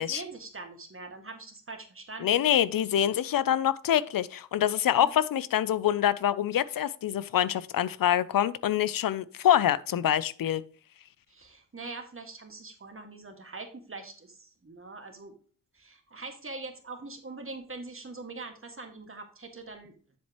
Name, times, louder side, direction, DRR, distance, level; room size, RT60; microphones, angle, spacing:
voice 1, 0.0-2.5 5.0-5.1 11.3-15.4 15.7-19.9, right 3 dB, 40° right, 1.8 m, -43 dB
voice 2, 2.2-10.6, left 10 dB, 85° left, 0.5 m, -25 dB
7.5 x 7.2 x 3.0 m
cardioid pair, 55°, 33 cm